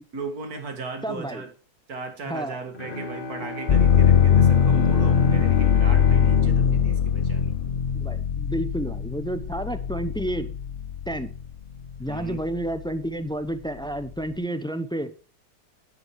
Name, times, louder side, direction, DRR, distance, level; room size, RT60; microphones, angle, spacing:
voice 1, 0.1-1.5 1.9-7.6 12.1-12.4, right 4 dB, 70° right, 2.3 m, -37 dB
voice 2, 1.0-1.4 2.2-2.6 7.9-10.5 11.1-11.3 12.0-15.1, right 1 dB, 5° left, 0.4 m, -30 dB
Bowed string instrument, 2.7-8.4, left 3 dB, 35° left, 2.3 m, -36 dB
sound 1, 3.7-11.5 12.0-12.8, left 8 dB, 65° left, 0.5 m, -21 dB
10.0 x 8.9 x 4.6 m
omnidirectional pair, 1.6 m